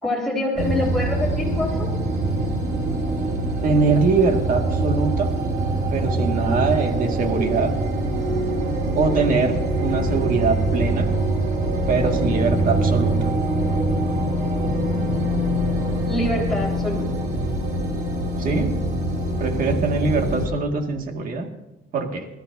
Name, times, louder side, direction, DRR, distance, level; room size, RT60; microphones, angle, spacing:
voice 1, 0.0-1.9 16.0-17.1, left 1 dB, ahead, -3 dB, 4.6 m, -25 dB
sound 1, 0.5-20.5, right 1 dB, 70° right, 3.0 m, -23 dB
voice 2, 3.6-5.3 5.9-7.8 9.0-11.1 11.9-13.3 18.4-18.8 19.4-21.5 21.9-22.3, right 4 dB, 55° right, 4 dB, 2.1 m, -22 dB
22.0 x 14.5 x 2.7 m, 0.98 s
cardioid pair, 110°, 17 cm